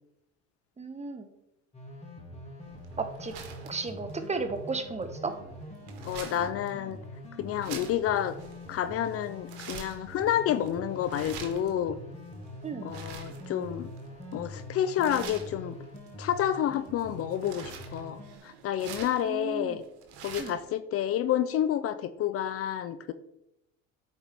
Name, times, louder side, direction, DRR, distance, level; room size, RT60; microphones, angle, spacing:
voice 1, 0.8-1.3 3.0-3.4 3.6-5.4 12.6-12.9 19.2-19.8 20.4-20.6, right 4 dB, 20° right, 9 dB, 0.8 m, -34 dB
sound 1, 1.7-18.4, equal, 20° left, 1.7 m, -44 dB
sound 2, 2.6-20.7, right 6 dB, 75° right, 1.2 m, -47 dB
voice 2, 6.0-7.0 7.4-8.3 8.7-12.0 12.8-13.9 14.3-15.8 16.2-19.8 20.2-23.1, left 10 dB, 45° left, 12 dB, 0.5 m, -29 dB
8.3 x 4.5 x 3.5 m, 0.84 s
hypercardioid pair, 75°, 33 cm